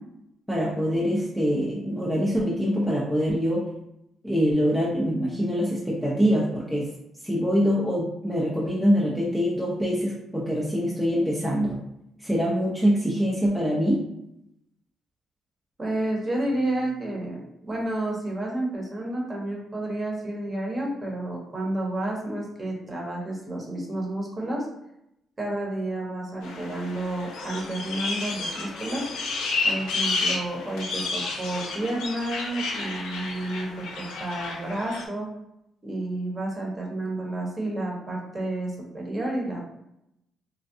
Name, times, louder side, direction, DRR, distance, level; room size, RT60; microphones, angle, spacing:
voice 1, 0.5-3.6 4.2-6.9 7.2-11.8 12.2-14.0, equal, ahead, -5 dB, 0.6 m, -24 dB
voice 2, 15.8-24.7 25.4-29.1 29.6-35.3 35.8-39.7, right 1 dB, 30° right, -2 dB, 1.0 m, -30 dB
sound 1, 26.4-35.0, left 3 dB, 90° left, 0.5 m, -31 dB
3.4 x 2.2 x 2.6 m, 0.81 s
cardioid pair, 90°, 0 cm